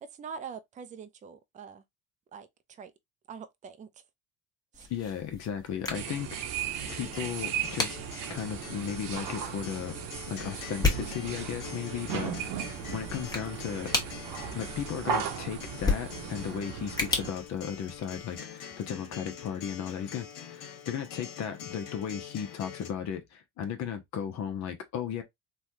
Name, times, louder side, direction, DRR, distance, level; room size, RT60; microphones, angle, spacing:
voice 1, 0.0-1.8 2.3-2.9 3.3-3.9 4.7-4.9, right 6 dB, 25° right, 0.4 m, -44 dB
sound 1, 4.7-18.4, left 3 dB, 10° left, 1.2 m, -36 dB
voice 2, 4.9-6.4 6.9-8.0 8.3-9.9 10.3-13.9 14.5-25.2, left 8 dB, 55° left, 0.8 m, -35 dB
sound 2, 5.9-17.3, right 8 dB, 70° right, 0.8 m, -36 dB
Acoustic guitar, 6.9-22.9, left 8 dB, 70° left, 1.2 m, -45 dB
3.2 x 2.3 x 2.7 m
supercardioid pair, 85°, 34 cm